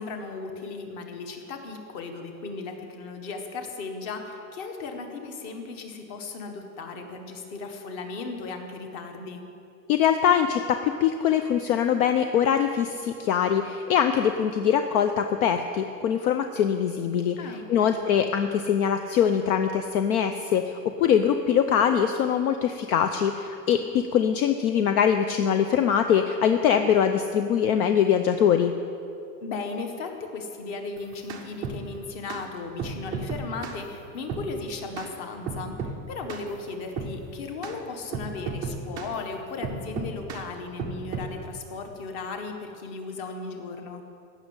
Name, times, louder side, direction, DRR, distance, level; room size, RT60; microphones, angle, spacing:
voice 1, 0.0-9.4 17.4-18.0 29.4-44.0, left 4 dB, 35° left, 4 dB, 1.6 m, -36 dB
voice 2, 9.9-28.7, left 8 dB, 60° left, 7 dB, 0.8 m, -23 dB
sound 1, 31.0-31.8 32.3-32.4 32.8-33.8 34.3-34.5 35.0-35.1 35.5-36.0 36.3-36.5 37.0-37.2 37.6-37.8 38.1-39.1 39.6-40.4 40.8-41.3, right 4 dB, 10° right, 0.4 m, -33 dB
15.5 x 6.5 x 9.6 m, 2.6 s
supercardioid pair, 170°, 49 cm